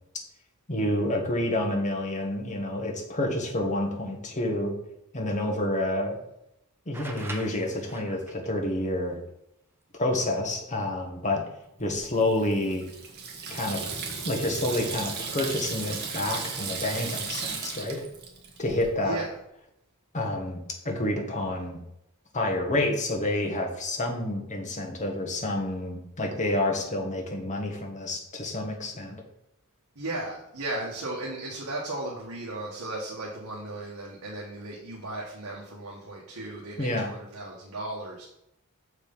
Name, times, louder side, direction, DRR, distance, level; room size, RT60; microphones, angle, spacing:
voice 1, 0.7-4.7 5.1-6.2 6.9-9.2 10.0-11.4 11.8-12.9 13.5-13.8 14.2-18.0 18.6-19.2 20.1-21.8 22.3-29.2 36.8-37.1, left 1 dB, 35° left, 1 dB, 1.5 m, -28 dB
sound 1, 6.9-8.5 10.4-10.5 11.6-12.0, right 2 dB, 10° right, 0.9 m, -42 dB
Water tap faucet / Sink (filling or washing), 12.1-18.9, right 5 dB, 50° right, 1.4 m, -35 dB
voice 2, 19.0-19.3 29.9-38.3, right 2 dB, 80° right, -4 dB, 1.5 m, -36 dB
6.7 x 4.8 x 5.3 m, 0.80 s
head